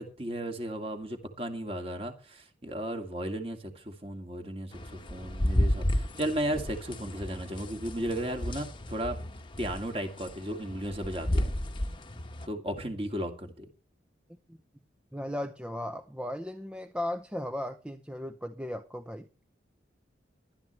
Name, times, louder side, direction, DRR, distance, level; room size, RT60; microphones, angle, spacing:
voice 1, 0.0-9.2 9.6-11.5 12.5-13.7, right 1 dB, 30° right, 2.4 m, -35 dB
sound 1, 4.7-12.5, left 1 dB, 25° left, 1.1 m, -32 dB
voice 2, 15.1-19.3, left 1 dB, 5° right, 0.7 m, -36 dB
19.0 x 12.0 x 3.2 m
head